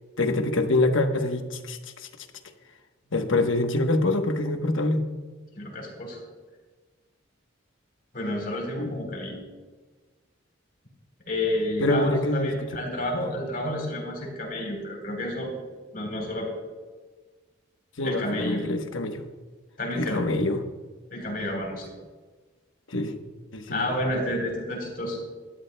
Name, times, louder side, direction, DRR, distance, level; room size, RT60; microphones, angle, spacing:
voice 1, 0.2-2.1 3.1-5.0 8.8-8.9 11.8-12.5 13.2-13.3 18.0-19.2 19.9-20.6 22.9-23.1 23.5-23.9, left 2 dB, 75° left, 6 dB, 1.1 m, -25 dB
voice 2, 5.5-6.2 8.1-9.4 11.3-15.5 15.9-16.5 18.0-18.6 19.8-20.2 21.1-21.9 23.7-25.2, left 1 dB, 45° left, 0 dB, 3.8 m, -30 dB
20.0 x 13.0 x 2.2 m, 1.4 s
head